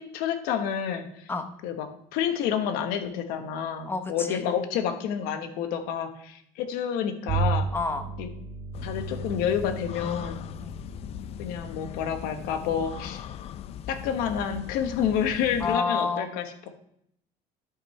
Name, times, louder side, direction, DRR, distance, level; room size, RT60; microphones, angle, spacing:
voice 1, 0.0-1.3 1.6-7.7 8.2-8.3 8.8-10.4 11.4-13.2 13.9-16.7, left 8 dB, 80° left, 7 dB, 1.3 m, -29 dB
voice 2, 3.9-4.4 7.7-8.1 10.6-10.8 15.6-16.3, left 4 dB, 15° left, 6 dB, 1.0 m, -29 dB
Bowed string instrument, 7.3-12.9, right 4 dB, 60° right, 2.0 m, -34 dB
sound 1, 8.7-15.8, left 10 dB, 45° left, 0.4 m, -39 dB
12.5 x 5.8 x 3.3 m, 0.72 s
cardioid pair, 130°, 15 cm